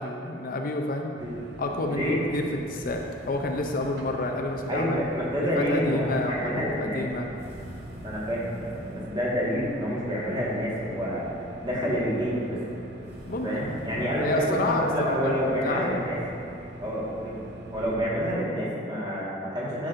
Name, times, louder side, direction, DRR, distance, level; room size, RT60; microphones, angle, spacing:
voice 1, 0.0-1.1 1.6-5.0 5.6-7.3 13.3-13.5 14.0-16.1, left 2 dB, 45° left, 2 dB, 0.5 m, -29 dB
sound 1, 1.2-18.0, right 1 dB, 60° right, 0.6 m, -43 dB
voice 2, 1.9-2.2 4.7-7.1 8.0-11.3 11.6-12.6 13.4-16.2 16.8-17.4 17.7-19.9, equal, 25° right, -7 dB, 1.7 m, -28 dB
sound 2, 2.7-4.2 7.4-9.2 13.0-14.7, equal, 30° left, 1.4 m, -48 dB
12.0 x 6.0 x 2.5 m, 2.8 s
head